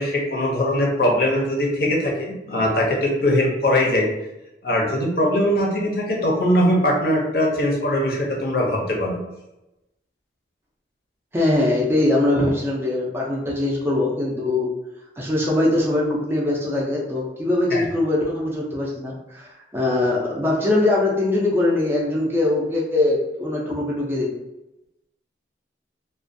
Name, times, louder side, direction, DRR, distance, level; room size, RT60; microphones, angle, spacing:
voice 1, 0.0-4.1 4.6-9.2 17.7-17.8, left 1 dB, 55° left, -1 dB, 0.6 m, -21 dB
voice 2, 11.3-14.7 15.2-24.3, left 2 dB, 15° right, -3 dB, 0.4 m, -22 dB
2.4 x 2.2 x 2.5 m, 0.94 s
head